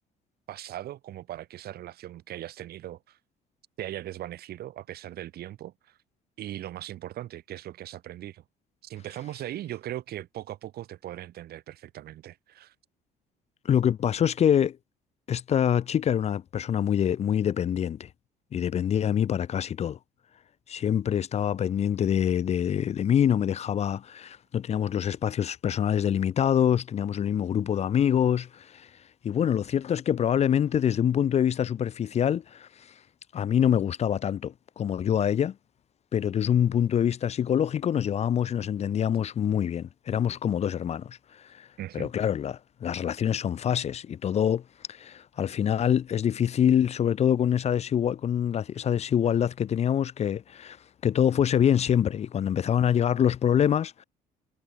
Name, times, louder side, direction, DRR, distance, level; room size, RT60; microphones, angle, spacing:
voice 1, 0.5-3.2 3.8-6.0 6.4-8.4 8.8-12.7 41.8-42.1, right 13 dB, 65° right, 3.3 m, -39 dB
voice 2, 13.6-14.8 15.3-18.1 18.5-20.0 20.7-28.9 29.2-32.9 33.3-35.6 36.1-41.7 41.9-50.8 51.0-54.0, left 9 dB, 40° left, 0.6 m, -25 dB
cardioid pair, 110°, 17 cm